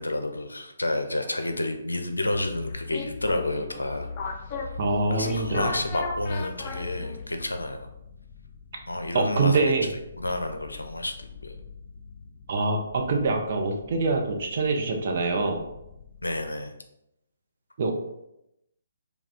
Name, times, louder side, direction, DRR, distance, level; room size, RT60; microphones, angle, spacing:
voice 1, 0.0-4.1 4.6-4.7 5.1-7.9 8.9-9.6 10.2-11.6 16.2-16.7, left 1 dB, 75° left, 6 dB, 0.5 m, -30 dB
sound 1, 2.2-16.5, left 5 dB, 40° left, 1.0 m, -48 dB
sound 2, 2.3-7.4, left 4 dB, 25° left, 0.5 m, -35 dB
voice 2, 4.8-5.7 9.1-9.9 12.5-15.6 17.8-17.9, right 3 dB, 45° right, 2 dB, 0.7 m, -25 dB
4.7 x 2.3 x 3.5 m, 0.84 s
figure-of-eight pair, 135°, 0 cm